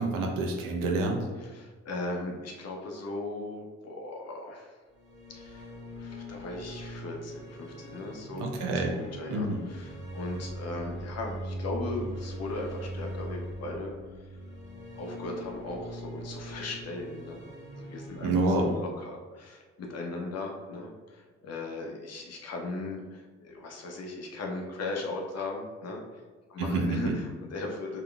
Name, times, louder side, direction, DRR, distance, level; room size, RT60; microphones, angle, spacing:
voice 1, 0.0-1.2 8.4-8.9 9.3-9.6 18.2-18.7 26.6-27.1, right 2 dB, 75° right, 2 dB, 0.6 m, -27 dB
voice 2, 1.4-4.8 5.3-5.7 6.0-14.4 15.0-17.4 17.7-26.2 26.5-28.0, left 2 dB, 50° left, 0 dB, 0.8 m, -38 dB
sound 1, 4.9-18.8, equal, 35° right, 1.3 m, -41 dB
3.7 x 2.2 x 2.4 m, 1.4 s
hypercardioid pair, 55°, 33 cm